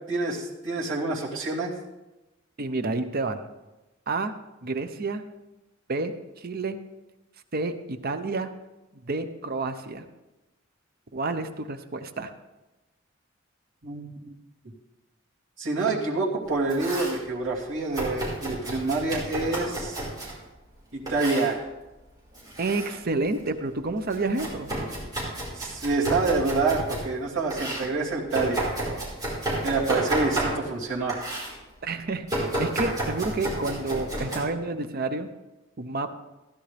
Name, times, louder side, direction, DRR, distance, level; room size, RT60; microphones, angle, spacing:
voice 1, 0.1-1.7 13.8-14.3 15.6-20.0 20.9-21.6 25.6-29.0 29.6-31.2, right 3 dB, 70° right, -7 dB, 2.6 m, -27 dB
voice 2, 2.6-3.5 4.1-4.3 4.6-5.2 5.9-6.8 7.5-8.5 9.0-10.0 11.1-12.3 22.6-24.7 31.8-35.3 35.8-36.1, right 3 dB, 50° right, 9 dB, 0.7 m, -29 dB
Domestic sounds home sounds, 16.4-17.2 17.9-20.4 21.1-21.5 22.3-23.0 23.3-27.1 27.5-30.8 31.1-31.5 32.3-34.4, right 1 dB, 20° right, 5.1 m, -31 dB
15.5 x 11.5 x 3.4 m, 1.0 s
head